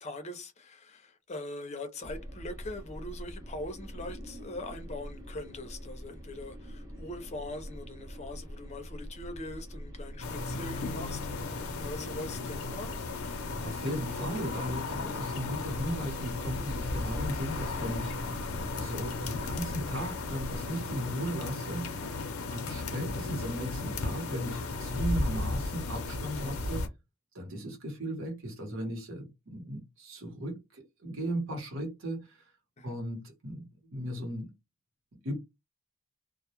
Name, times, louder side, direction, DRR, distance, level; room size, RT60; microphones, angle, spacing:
voice 1, 0.0-12.9 32.8-33.0, left 1 dB, 30° left, 0.5 m, -42 dB
sound 1, 2.0-20.7, equal, 15° right, 0.6 m, -44 dB
sound 2, 10.2-26.9, left 3 dB, 85° left, 0.6 m, -35 dB
voice 2, 13.4-18.4 18.8-22.1 22.5-26.9 27.3-32.4 32.8-34.5 35.2-35.4, equal, 65° right, 0.9 m, -36 dB
2.2 x 2.0 x 2.8 m
head